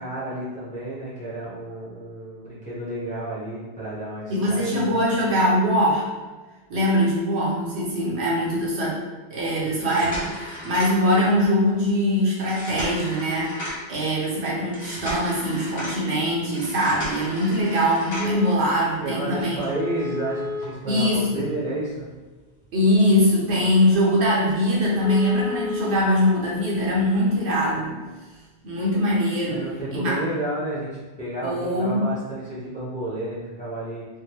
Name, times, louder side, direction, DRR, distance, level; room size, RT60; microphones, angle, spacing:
voice 1, 0.0-5.0 19.0-22.1 29.5-34.1, right 1 dB, 10° left, -8 dB, 0.7 m, -31 dB
voice 2, 4.3-6.1 6.7-9.0 9.3-13.5 13.9-19.6 20.9-21.4 22.7-28.0 28.6-29.6 29.9-30.1 31.4-32.0, equal, 70° right, -5 dB, 1.1 m, -22 dB
sound 1, 9.7-11.4 12.4-13.9 14.7-16.0 16.5-18.5 19.7-21.5 22.0-22.1 22.6-22.7 23.2-23.3 23.6-23.7 24.1-24.2 24.5-24.6 25.0-26.0 27.0-27.1, left 2 dB, 60° left, 1.2 m, -33 dB
3.5 x 2.3 x 2.9 m, 1.3 s
omnidirectional pair, 1.2 m